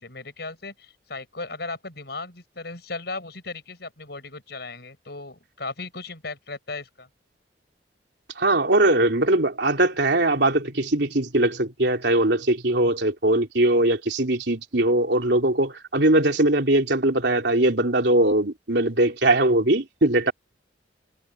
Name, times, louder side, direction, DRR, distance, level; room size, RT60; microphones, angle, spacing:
voice 1, 0.0-7.1, left 3 dB, 60° left, 7.8 m, -36 dB
voice 2, 8.4-20.3, right 1 dB, 70° right, 3.4 m, -21 dB
head